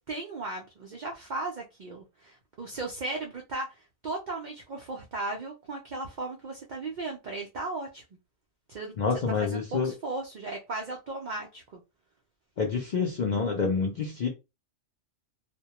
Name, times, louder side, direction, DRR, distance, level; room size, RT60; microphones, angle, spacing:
voice 1, 0.1-8.0 8.7-8.9 9.4-11.8, right 2 dB, 80° right, 0.4 m, -36 dB
voice 2, 9.0-9.9 12.6-14.3, left 5 dB, 70° left, 0.4 m, -27 dB
2.2 x 2.1 x 2.8 m
omnidirectional pair, 1.4 m